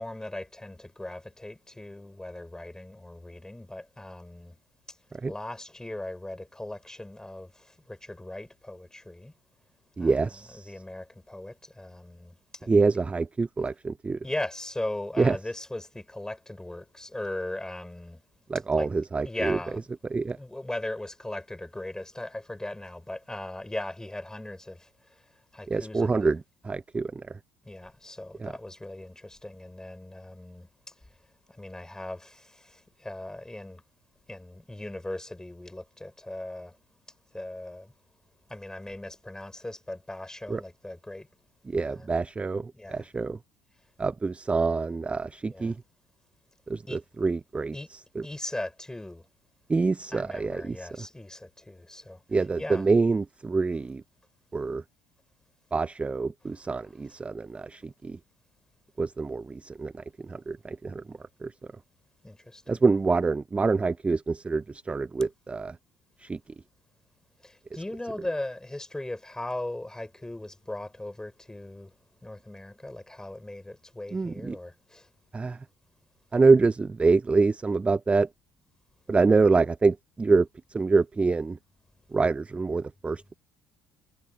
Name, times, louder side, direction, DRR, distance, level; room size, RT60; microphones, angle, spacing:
voice 1, 0.0-4.6 5.3-7.5 7.9-9.3 10.0-12.3 14.2-18.2 18.8-18.9 19.2-19.9 20.3-24.8 25.5-26.4 27.7-30.7 31.6-32.5 33.0-33.8 34.3-36.7 37.3-37.9 38.5-41.3 41.8-42.1 42.7-43.1 45.4-45.7 46.9-47.0 47.7-47.9 48.2-49.2 50.1-52.2 52.6-52.9 62.2-62.8 67.4-71.9 72.2-75.0, left 1 dB, 10° left, 5.0 m, -38 dB
voice 2, 10.0-10.7 12.7-14.2 15.2-15.4 18.5-19.6 20.1-20.4 25.7-27.4 28.4-28.5 40.5-40.6 41.7-43.4 44.0-45.8 46.7-48.3 49.7-51.1 52.3-54.0 54.5-54.8 55.7-58.2 59.0-59.9 60.2-61.5 62.7-65.8 66.2-66.4 74.1-74.6 75.3-75.6 76.3-78.3 79.1-81.6 82.1-83.3, right 4 dB, 20° right, 0.4 m, -26 dB
supercardioid pair, 75°, 7 cm